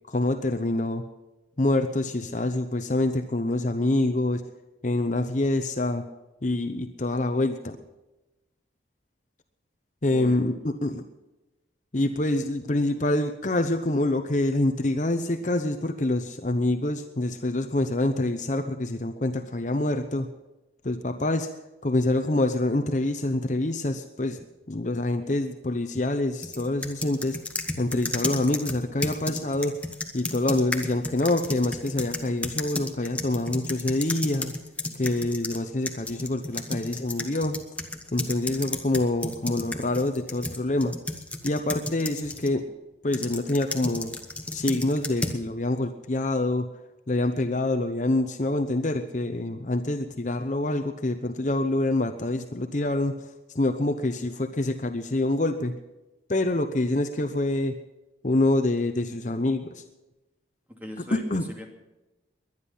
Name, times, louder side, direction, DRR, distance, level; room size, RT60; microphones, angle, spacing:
voice 1, 0.1-1.0 1.6-4.4 4.8-6.0 6.4-7.8 10.0-11.0 11.9-20.3 20.8-21.5 21.8-24.4 24.7-27.4 27.8-29.8 30.1-34.5 35.0-37.6 38.1-41.0 41.4-42.6 43.0-44.2 44.5-46.7 47.1-53.1 53.5-55.7 56.3-57.7 58.2-59.8 61.1-61.4, left 2 dB, 40° left, 7 dB, 0.8 m, -26 dB
voice 2, 10.1-10.4 60.8-61.7, left 1 dB, 10° right, 1 dB, 2.5 m, -39 dB
sound 1, 26.4-35.6 35.9-42.5 43.1-45.4, left 2 dB, 5° left, 1.2 m, -33 dB
21.5 x 10.5 x 5.6 m, 1.0 s
head